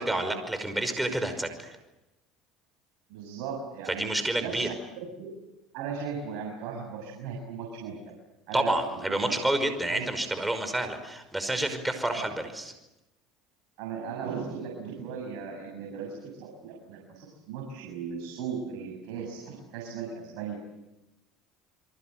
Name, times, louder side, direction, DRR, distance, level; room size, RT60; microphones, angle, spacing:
voice 1, 0.0-1.7 4.0-4.7 8.5-12.7, right 1 dB, 10° right, 8 dB, 5.4 m, -29 dB
voice 2, 3.1-4.1 4.4-5.3 5.7-8.1 8.5-9.4 9.9-10.0 13.8-20.6, right 6 dB, 70° right, 1 dB, 6.8 m, -37 dB
28.5 x 23.5 x 7.8 m, 0.95 s
supercardioid pair, 100°, 0 cm